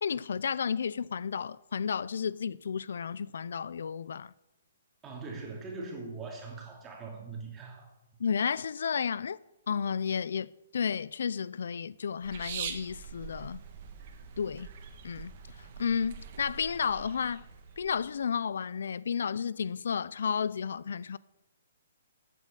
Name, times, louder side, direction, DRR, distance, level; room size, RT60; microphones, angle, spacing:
voice 1, 0.0-4.3 8.2-9.4 9.7-13.6 14.4-14.7 15.0-17.4 17.8-21.2, left 6 dB, 70° left, 0.4 m, -32 dB
voice 2, 5.0-7.9, right 3 dB, 15° right, 2.7 m, -41 dB
sound 1, 12.2-18.1, right 7 dB, 40° right, 1.6 m, -44 dB
13.0 x 8.5 x 8.2 m
hypercardioid pair, 165°, 0 cm